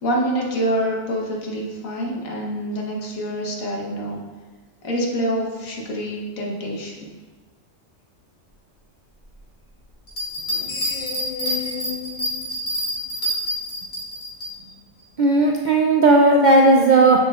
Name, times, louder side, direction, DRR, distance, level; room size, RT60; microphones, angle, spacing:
voice 1, 0.0-4.2 4.8-7.1, right 1 dB, 80° left, -1 dB, 1.4 m, -26 dB
sound 1, 10.1-14.5, equal, 55° left, 2.5 m, -27 dB
Screech, 10.3-13.6, left 5 dB, 35° left, 0.6 m, -34 dB
voice 2, 15.2-17.2, right 2 dB, 70° right, 1 dB, 0.4 m, -15 dB
7.2 x 6.9 x 2.4 m, 1.3 s
omnidirectional pair, 1.4 m